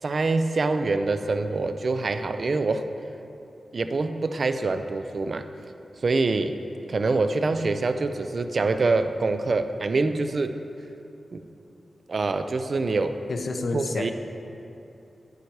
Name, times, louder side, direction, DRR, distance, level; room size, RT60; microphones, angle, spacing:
voice 1, 0.0-2.9 3.7-5.5 6.0-6.5 6.9-10.6 11.3-11.4 12.1-13.2 13.7-14.1, right 3 dB, 50° right, 9 dB, 0.4 m, -25 dB
voice 2, 13.3-14.1, left 3 dB, 60° left, 6 dB, 0.6 m, -29 dB
9.0 x 7.1 x 4.7 m, 2.8 s
wide cardioid pair, 140°, 0 cm